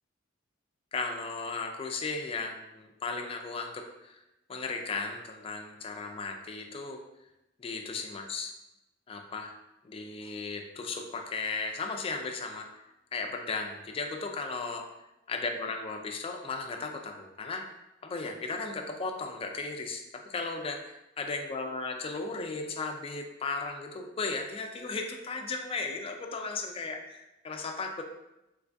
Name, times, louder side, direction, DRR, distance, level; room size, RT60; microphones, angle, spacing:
voice 1, 0.9-4.2 4.5-7.0 7.6-8.5 9.1-9.6 9.8-12.8 13.1-14.9 15.3-17.8 18.0-28.0, left 3 dB, 30° left, 3 dB, 0.3 m, -36 dB
3.4 x 3.1 x 2.5 m, 0.93 s
head